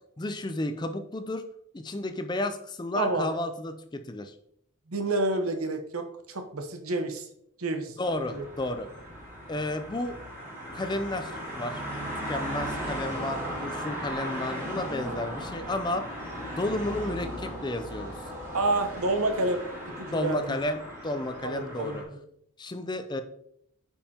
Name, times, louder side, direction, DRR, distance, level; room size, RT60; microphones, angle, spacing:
voice 1, 0.2-1.4 1.7-4.3 8.0-8.9 9.5-10.2 10.7-11.8 12.3-16.1 16.5-18.2 20.0-22.0 22.6-23.2, left 1 dB, 20° left, 8 dB, 0.4 m, -32 dB
voice 2, 3.0-3.3 4.9-7.3 7.6-7.9 8.3-8.5 18.5-19.6 20.0-20.6 21.4-22.2, right 2 dB, 85° right, 6 dB, 1.0 m, -29 dB
sound 1, 8.0-22.0, equal, 10° right, 2.0 m, -37 dB
8.6 x 5.5 x 2.8 m, 0.71 s
head